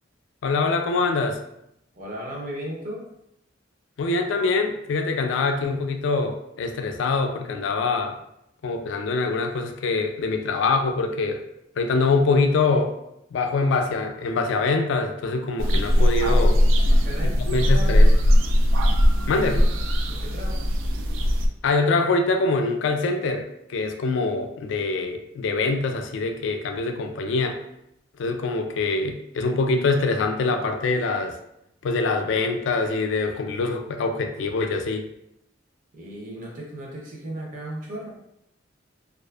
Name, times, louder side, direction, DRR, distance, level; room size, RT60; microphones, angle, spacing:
voice 1, 0.4-1.4 4.0-8.2 8.6-11.4 11.8-12.9 13.3-16.6 17.5-18.1 19.3-19.7 21.6-27.6 28.2-31.3 31.8-35.1, left 3 dB, 70° left, 5 dB, 0.3 m, -24 dB
voice 2, 1.9-3.1 16.9-18.1 20.1-20.8 35.9-38.1, equal, 45° right, -1 dB, 0.6 m, -36 dB
sound 1, 15.6-21.5, equal, 85° right, 0.3 m, -19 dB
2.4 x 2.4 x 2.3 m, 0.79 s
head